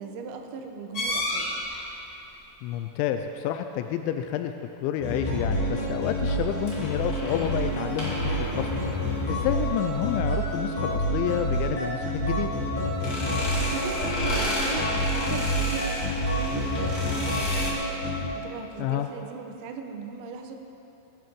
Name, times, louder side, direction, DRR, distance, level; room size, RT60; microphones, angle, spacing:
voice 1, 0.0-1.6 13.7-17.8 18.4-20.6, right 5 dB, 75° right, 4 dB, 2.9 m, -38 dB
sound 1, 0.9-1.9 6.4-10.2 12.9-17.7, left 1 dB, 65° left, 0.9 m, -32 dB
voice 2, 2.6-4.5 4.8-8.7 9.3-12.5 18.8-19.1, left 10 dB, 85° left, 7 dB, 2.7 m, -29 dB
sound 2, 5.0-18.2, equal, 30° left, 4.7 m, -28 dB
21.0 x 9.3 x 5.2 m, 2.9 s
omnidirectional pair, 5.7 m